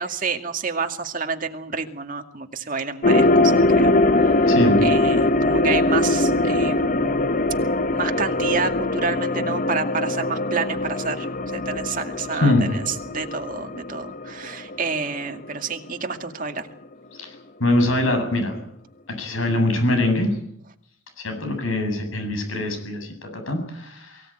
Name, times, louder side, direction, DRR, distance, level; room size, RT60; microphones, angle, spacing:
voice 1, 0.0-4.5 4.8-7.2 7.9-16.7, right 5 dB, 40° right, 5 dB, 2.2 m, -29 dB
sound 1, 3.0-15.3 15.6-15.7, left 2 dB, 40° left, 0.9 m, -21 dB
voice 2, 4.5-4.8 12.4-12.6 17.2-17.3 17.6-18.6 19.2-20.3 21.2-24.2, left 1 dB, 85° left, 6 dB, 7.7 m, -23 dB
23.5 x 17.0 x 9.2 m, 0.69 s
head